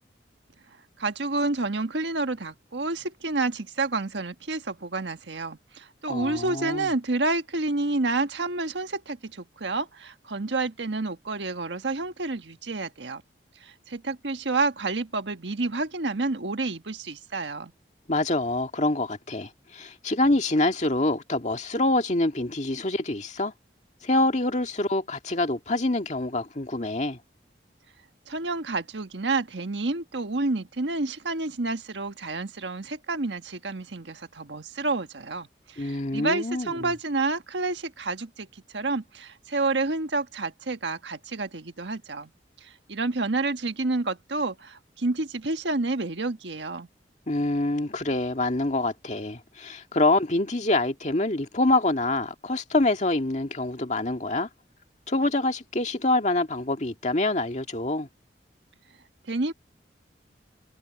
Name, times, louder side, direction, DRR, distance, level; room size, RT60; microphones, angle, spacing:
voice 1, 1.0-13.2 13.6-17.7 28.3-42.3 42.6-46.9 59.3-59.5, right 3 dB, 85° right, 1.5 m, -29 dB
voice 2, 6.1-6.9 18.1-23.5 24.0-27.2 35.8-36.9 47.3-54.5 55.1-58.1, left 2 dB, 40° left, 2.0 m, -26 dB
head